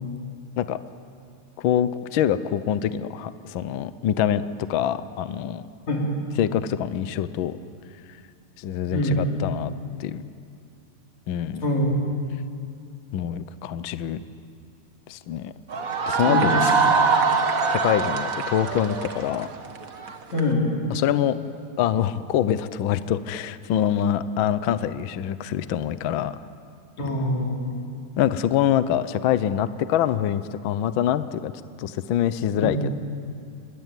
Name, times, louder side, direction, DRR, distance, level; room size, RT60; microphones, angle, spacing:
voice 1, 1.6-4.4 4.7-5.6 6.4-7.6 8.6-9.7 10.0-10.2 11.3-11.6 13.1-14.2 15.1-15.5 16.1-16.5 16.9-17.0 17.7-19.5 20.9-21.4 21.8-26.4 28.2-31.5 31.8-32.9, left 10 dB, 90° left, 13 dB, 1.0 m, -25 dB
voice 2, 8.9-9.2 11.6-11.9 16.2-16.7 20.3-20.7 27.0-27.8 32.5-32.8, left 1 dB, 65° left, -1 dB, 5.6 m, -24 dB
sound 1, 15.7-20.4, right 4 dB, 45° right, 1.2 m, -23 dB
27.5 x 23.0 x 9.2 m, 2.4 s
omnidirectional pair, 3.4 m